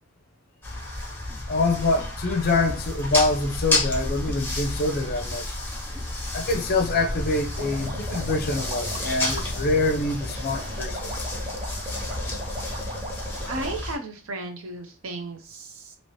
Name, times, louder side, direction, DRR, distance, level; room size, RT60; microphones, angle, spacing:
sound 1, 0.6-13.9, left 2 dB, 10° left, 0.9 m, -31 dB
voice 1, 1.5-5.6 6.3-11.2, left 2 dB, 45° left, 0.5 m, -25 dB
sound 2, 7.5-13.8, equal, 30° right, 0.5 m, -38 dB
voice 2, 13.5-16.0, right 2 dB, 70° right, 0.7 m, -34 dB
2.9 x 2.8 x 3.1 m
head